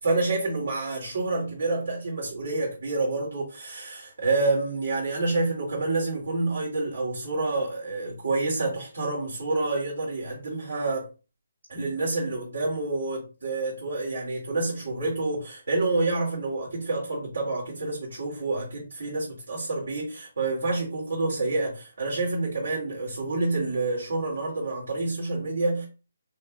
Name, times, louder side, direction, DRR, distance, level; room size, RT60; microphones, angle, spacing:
voice 1, 0.0-11.1 11.7-25.9, right 2 dB, 80° right, 2.7 m, -28 dB
5.2 x 3.6 x 2.4 m
hypercardioid pair, 160°, 0 cm